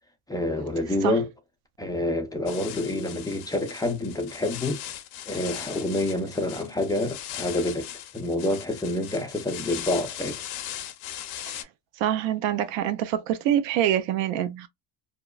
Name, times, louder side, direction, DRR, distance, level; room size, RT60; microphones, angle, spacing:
voice 1, 0.3-1.3 1.8-4.8 5.3-7.9 8.1-10.4, left 1 dB, 10° left, 0.5 m, -27 dB
sound 1, 2.5-11.6, left 12 dB, 60° left, 0.6 m, -39 dB
voice 2, 12.0-14.7, right 11 dB, 80° right, 0.6 m, -25 dB
2.9 x 2.1 x 2.3 m
cardioid pair, 110°, 44 cm